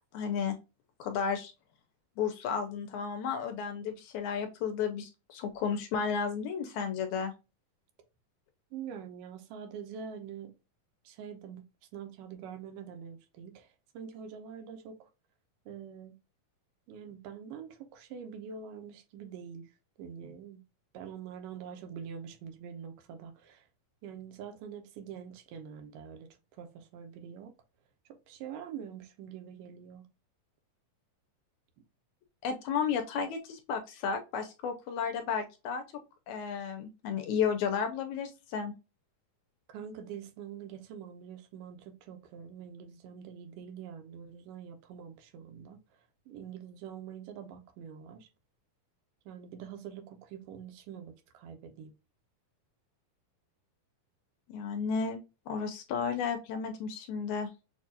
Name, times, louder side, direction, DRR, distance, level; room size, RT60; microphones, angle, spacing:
voice 1, 0.1-0.6 1.0-1.5 2.2-7.3 32.4-35.8 36.3-38.7 54.5-55.2 55.5-57.5, left 6 dB, 75° left, 1.9 m, -33 dB
voice 2, 8.7-10.5 11.1-11.6 11.9-13.7 13.9-15.1 15.7-16.2 16.9-19.7 20.0-20.6 20.9-23.7 24.0-26.3 26.6-27.5 28.3-30.1 39.7-45.8 46.3-48.3 49.3-51.9, right 7 dB, 85° right, 2.4 m, -45 dB
6.5 x 2.4 x 2.7 m
omnidirectional pair, 3.7 m